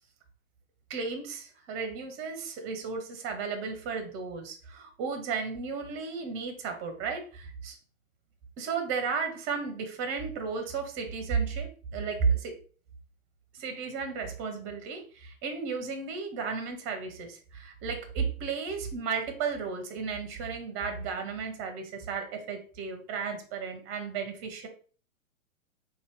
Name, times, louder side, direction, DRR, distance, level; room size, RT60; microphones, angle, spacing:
voice 1, 0.9-7.8 8.6-12.6 13.5-24.7, right 5 dB, 30° right, 5 dB, 0.9 m, -34 dB
3.9 x 2.6 x 3.6 m, 0.39 s
hypercardioid pair, 115°, 42 cm